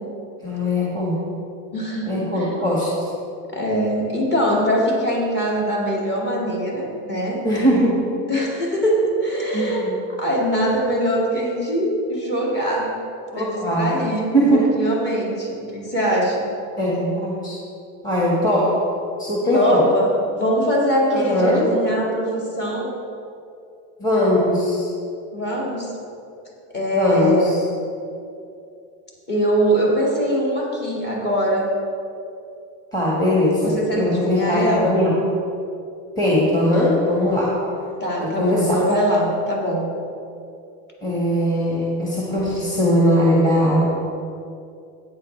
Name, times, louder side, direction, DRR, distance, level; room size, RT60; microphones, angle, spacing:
voice 1, 0.4-1.2 2.0-3.1 7.4-8.1 9.5-10.0 13.3-13.9 14.3-14.7 16.8-17.6 18.0-18.8 19.2-19.9 21.1-21.7 24.0-24.9 26.9-27.6 32.9-35.2 36.2-37.6 38.2-38.9 41.0-44.0, equal, 10° left, -6 dB, 1.6 m, -20 dB
voice 2, 1.7-2.6 3.5-7.4 8.3-13.0 13.3-16.5 19.5-22.9 25.3-25.9 26.7-27.6 29.3-31.8 33.6-35.0 38.0-39.9, equal, 30° left, -3 dB, 2.2 m, -22 dB
13.5 x 8.9 x 3.3 m, 2.6 s
cardioid pair, 150°, 35 cm